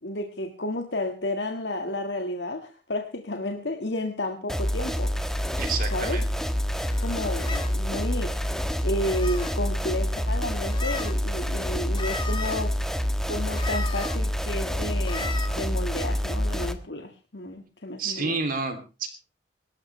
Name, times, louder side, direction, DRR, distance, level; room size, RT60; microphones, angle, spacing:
voice 1, 0.0-5.1 5.9-6.2 7.0-8.5 8.8-12.7 13.2-18.4, left 1 dB, 70° left, 4 dB, 1.9 m, -32 dB
sound 1, 4.5-16.7, equal, 5° left, 1.4 m, -27 dB
voice 2, 5.6-6.3 18.0-19.1, right 4 dB, 55° right, 5 dB, 2.9 m, -29 dB
sound 2, 5.9-6.1 6.8-7.8 8.8-9.6 10.7-11.2 11.9-12.6 13.5-14.2 15.0-15.5, left 4 dB, 30° left, 2.6 m, -36 dB
24.0 x 13.0 x 3.3 m, 0.33 s
head